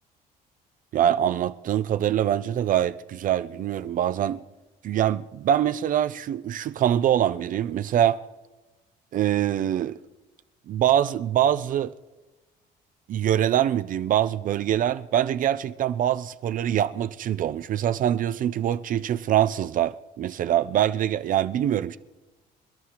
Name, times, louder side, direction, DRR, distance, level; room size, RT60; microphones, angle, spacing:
voice 1, 0.9-4.4 4.8-8.2 9.1-10.0 10.7-11.9 13.1-22.0, right 11 dB, 55° right, 0.5 m, -24 dB
28.0 x 11.0 x 3.0 m
cardioid pair, 110°, 17 cm